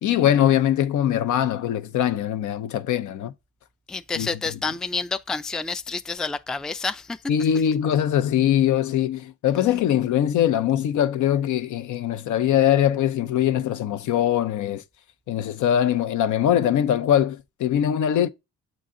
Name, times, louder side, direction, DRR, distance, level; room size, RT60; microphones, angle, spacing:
voice 1, 0.0-3.3 4.1-4.3 7.3-14.8 15.3-18.3, left 10 dB, 75° left, 0.7 m, -22 dB
voice 2, 3.9-7.2, left 4 dB, ahead, 0.3 m, -29 dB
7.5 x 4.0 x 3.8 m
cardioid pair, 90°, 30 cm